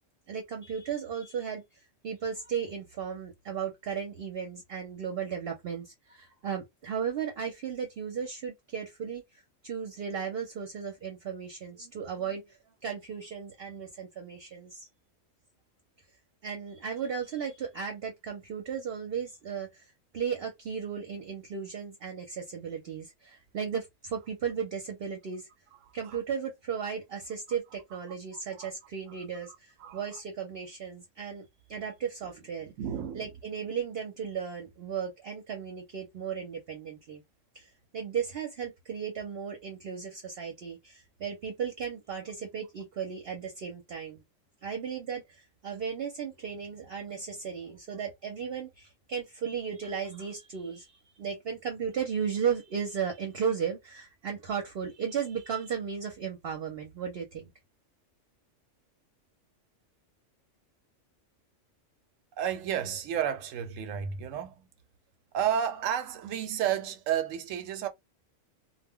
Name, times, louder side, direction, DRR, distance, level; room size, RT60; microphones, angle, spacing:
voice 1, 0.3-14.9 16.4-25.5 25.9-32.7 33.1-37.2 37.5-44.2 44.6-57.5, right 7 dB, 55° right, 0.8 m, -35 dB
voice 2, 25.8-26.2 28.5-28.7 29.1-29.2 29.8-30.2 32.6-33.3 62.4-64.7 65.3-67.9, right 9 dB, 90° right, 1.0 m, -32 dB
2.2 x 2.1 x 3.6 m
omnidirectional pair, 1.3 m